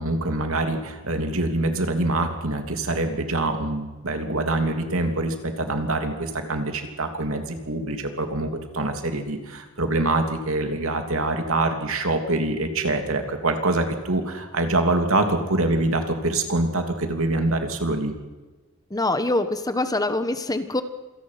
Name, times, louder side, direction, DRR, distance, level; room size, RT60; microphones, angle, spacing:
voice 1, 0.0-18.1, right 2 dB, 70° right, 5 dB, 3.1 m, -25 dB
voice 2, 18.9-20.8, left 2 dB, 15° left, 10 dB, 1.3 m, -24 dB
27.0 x 18.0 x 5.9 m, 1.2 s
head